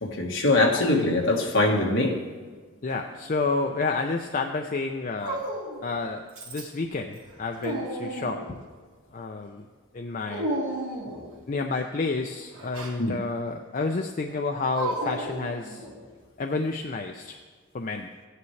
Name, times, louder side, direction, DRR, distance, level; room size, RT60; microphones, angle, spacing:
voice 1, 0.0-2.2 13.0-13.1, left 2 dB, 60° left, 1 dB, 1.5 m, -22 dB
Dog, 1.0-1.8 2.9-3.8 5.2-6.0 6.4-6.9 7.2-8.6 10.3-11.4 12.5-13.0 14.7-16.1, right 1 dB, 70° right, 2.3 m, -34 dB
voice 2, 2.8-5.4 5.8-8.6 9.1-9.6 9.9-10.5 11.5-15.9 16.4-17.4 17.7-18.1, left 3 dB, 40° left, 4 dB, 0.5 m, -30 dB
15.5 x 9.6 x 3.2 m, 1.5 s
head